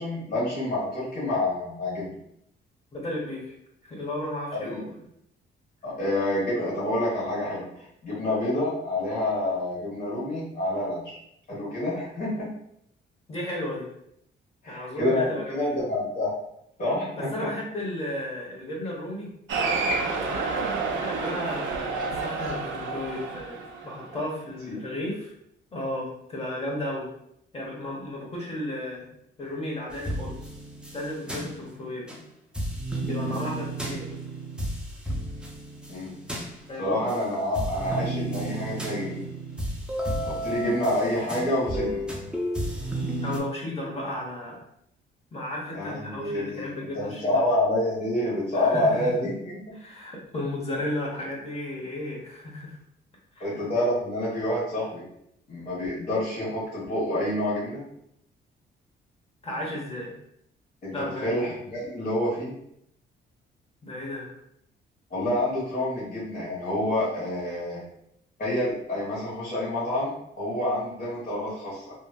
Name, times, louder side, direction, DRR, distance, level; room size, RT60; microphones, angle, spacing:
voice 1, 0.0-2.1 4.6-4.9 5.8-11.2 11.5-12.5 14.6-16.3 16.8-17.3 24.7-24.8 31.3-31.4 33.2-33.5 35.9-36.1 36.8-39.2 40.2-42.0 45.7-46.7 46.9-49.6 53.4-55.0 55.5-57.8 60.8-62.5 65.1-67.8 68.4-71.9, left 1 dB, 50° left, -9 dB, 1.3 m, -28 dB
voice 2, 2.9-3.5 3.8-4.8 13.3-13.9 14.7-15.8 17.1-19.3 20.3-25.3 25.7-27.1 27.5-29.1 29.4-30.4 30.9-32.1 33.1-34.1 36.7-37.1 43.2-44.6 45.3-47.4 48.5-49.0 49.8-52.8 53.3-53.6 59.4-60.2 60.9-61.3 63.8-64.3, left 1 dB, 30° left, -3 dB, 1.0 m, -34 dB
Cheering, 19.5-24.3, right 4 dB, 75° right, 0.5 m, -29 dB
sound 1, 29.9-32.2 32.5-37.2 37.5-43.4, right 1 dB, 5° right, 0.6 m, -32 dB
2.9 x 2.5 x 2.3 m, 0.75 s
cardioid pair, 90°, 20 cm